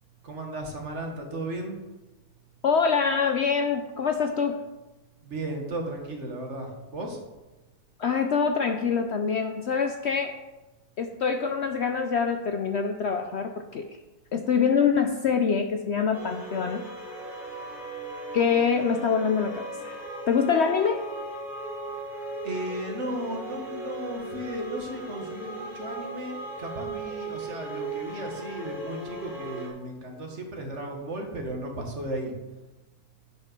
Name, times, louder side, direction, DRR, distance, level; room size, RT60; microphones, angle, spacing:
voice 1, 0.2-1.8 5.2-7.2 22.4-32.3, right 1 dB, 50° right, 2 dB, 1.8 m, -35 dB
voice 2, 2.6-4.6 8.0-10.4 11.0-14.0 14.3-16.9 18.3-20.0 20.3-21.0, left 6 dB, 60° left, 6 dB, 0.7 m, -25 dB
sound 1, 16.1-29.7, right 2 dB, ahead, 2.5 m, -37 dB
9.1 x 5.3 x 6.7 m, 1.1 s
omnidirectional pair, 1.6 m